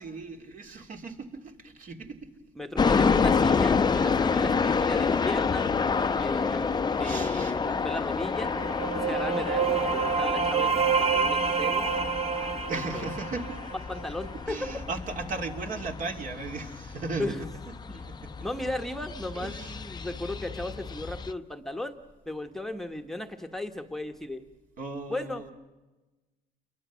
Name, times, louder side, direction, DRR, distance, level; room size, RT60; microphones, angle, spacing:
voice 1, 0.0-2.3 7.0-7.5 12.7-13.6 14.5-17.5 17.9-18.3 19.3-19.8 24.8-25.5, right 3 dB, 50° right, 3 dB, 3.0 m, -37 dB
voice 2, 2.6-5.7 6.2-8.5 8.9-11.9 12.9-13.1 13.9-14.6 17.2-17.4 17.9-18.0 18.4-22.0 22.3-24.4 25.1-25.4, left 1 dB, ahead, 4 dB, 1.2 m, -36 dB
sound 1, 2.8-21.3, left 5 dB, 25° left, 0.7 m, -29 dB
sound 2, 8.4-14.1, right 6 dB, 35° right, 1.3 m, -28 dB
28.5 x 22.5 x 6.3 m, 1.2 s
cardioid pair, 110°, 17 cm